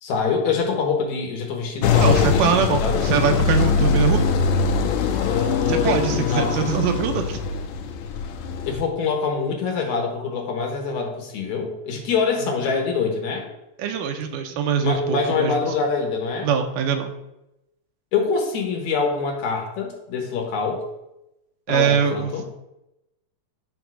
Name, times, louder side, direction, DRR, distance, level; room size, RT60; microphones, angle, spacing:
voice 1, 0.0-3.1 5.2-6.5 8.6-13.4 14.8-16.5 18.1-20.8 21.7-22.4, left 5 dB, 65° left, 1 dB, 2.6 m, -25 dB
sound 1, 1.8-8.7, left 5 dB, 90° left, 2.4 m, -22 dB
voice 2, 2.0-4.3 5.7-7.4 13.8-15.6 16.4-17.1 21.7-22.4, right 6 dB, 80° right, 6 dB, 2.4 m, -23 dB
10.5 x 3.6 x 6.1 m, 0.90 s
omnidirectional pair, 3.7 m